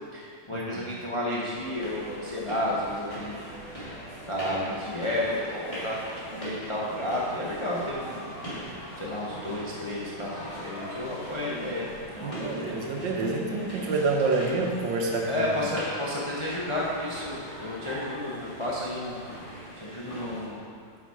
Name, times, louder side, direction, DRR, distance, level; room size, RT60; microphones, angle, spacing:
voice 1, 0.1-4.0 4.3-5.2 5.5-8.3 9.0-11.9 12.1-12.7 15.3-19.2 19.8-20.6, left 1 dB, 35° left, -6 dB, 0.4 m, -32 dB
sound 1, 1.5-20.5, equal, 15° left, 2.1 m, -40 dB
voice 2, 12.2-15.6, right 3 dB, 70° right, 1 dB, 1.4 m, -27 dB
8.3 x 5.1 x 4.7 m, 2.3 s
omnidirectional pair, 2.2 m